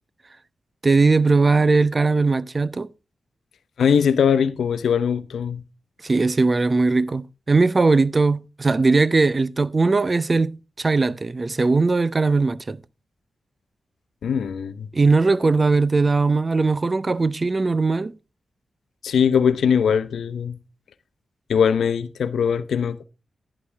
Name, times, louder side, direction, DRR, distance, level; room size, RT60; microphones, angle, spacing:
voice 1, 0.8-2.9 6.0-12.8 14.9-18.1, right 3 dB, 40° right, 0.6 m, -19 dB
voice 2, 3.8-5.6 14.2-14.9 19.0-20.6 21.5-23.0, left 7 dB, 85° left, 0.7 m, -21 dB
11.0 x 11.0 x 3.4 m
cardioid pair, 45°, 0 cm